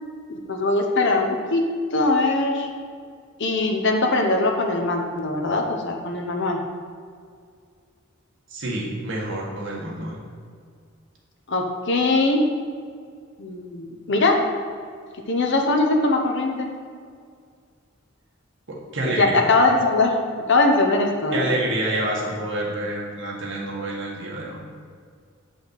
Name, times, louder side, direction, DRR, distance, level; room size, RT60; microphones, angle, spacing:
voice 1, 0.5-2.7 3.4-6.6 11.5-12.4 13.4-14.4 15.3-16.7 19.2-20.2 20.5-21.5, left 2 dB, 60° left, 3 dB, 1.0 m, -21 dB
voice 2, 8.5-10.2 18.7-19.5 21.3-24.6, right 1 dB, 65° right, -3 dB, 1.8 m, -28 dB
8.9 x 5.1 x 4.1 m, 2.1 s
head